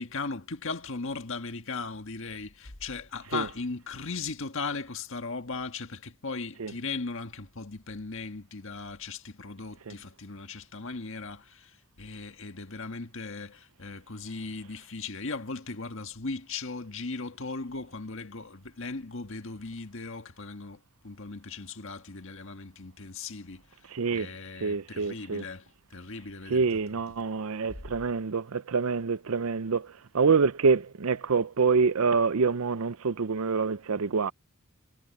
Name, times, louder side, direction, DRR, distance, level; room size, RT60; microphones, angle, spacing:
voice 1, 0.0-23.6 24.1-27.1, left 4 dB, 60° left, 1.7 m, -38 dB
voice 2, 23.9-24.3 24.6-25.5 26.5-34.3, right 5 dB, 70° right, 0.6 m, -26 dB
head